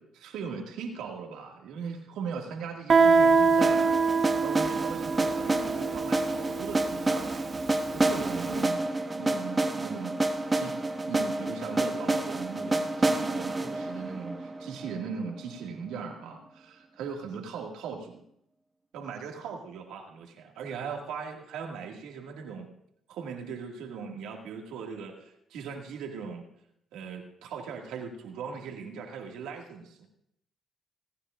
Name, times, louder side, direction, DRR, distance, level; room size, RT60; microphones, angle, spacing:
voice 1, 0.1-3.9 4.4-8.9 9.2-10.2 10.5-10.8 11.0-18.2 18.9-22.7 23.1-26.5 26.9-30.1, right 6 dB, 85° right, 1 dB, 2.1 m, -39 dB
Guitar, 2.9-8.3, right 4 dB, 45° right, 1.2 m, -25 dB
sound 1, 3.6-15.5, right 2 dB, 25° right, 1.3 m, -29 dB
28.5 x 9.8 x 2.5 m, 0.74 s
supercardioid pair, 70°, 0 cm